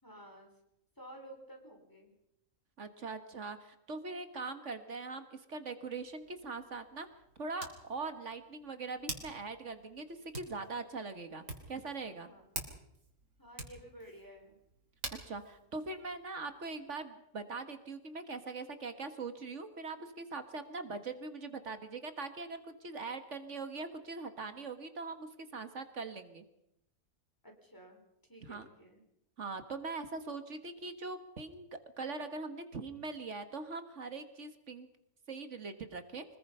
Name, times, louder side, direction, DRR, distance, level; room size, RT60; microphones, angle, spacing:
voice 1, 0.0-0.5 1.0-2.1 12.2-12.4 13.4-14.6 27.4-28.0 28.3-29.0, right 1 dB, 15° left, 1 dB, 4.9 m, -53 dB
voice 2, 2.8-7.1 7.4-12.3 15.3-26.4 28.4-28.7 29.4-31.7 32.0-34.9 35.3-36.2, right 3 dB, 55° right, 9 dB, 1.8 m, -42 dB
Hands, 6.0-16.8, right 2 dB, 80° right, 3.8 m, -49 dB
25.0 x 21.0 x 5.6 m, 0.81 s
omnidirectional pair, 1.5 m